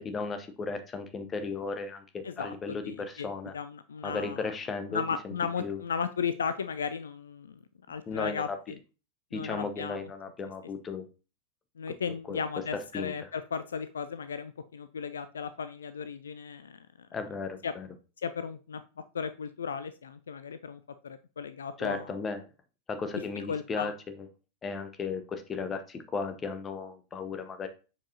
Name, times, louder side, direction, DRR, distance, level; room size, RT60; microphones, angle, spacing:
voice 1, 0.0-3.5 4.0-5.3 5.6-5.8 8.1-8.6 9.3-11.1 12.3-12.4 12.7-13.3 17.1-17.9 21.8-22.4 22.9-23.9 24.6-27.7, left 4 dB, 20° left, 9 dB, 0.9 m, -35 dB
voice 2, 2.2-2.5 2.8-3.3 3.5-4.4 4.9-7.6 7.9-8.8 9.3-10.1 11.8-17.1 17.6-17.7 18.2-18.8 19.1-22.1 23.5-23.9, left 6 dB, 70° left, 12 dB, 0.4 m, -35 dB
7.0 x 4.9 x 2.7 m, 0.32 s
figure-of-eight pair, 90°, 0 cm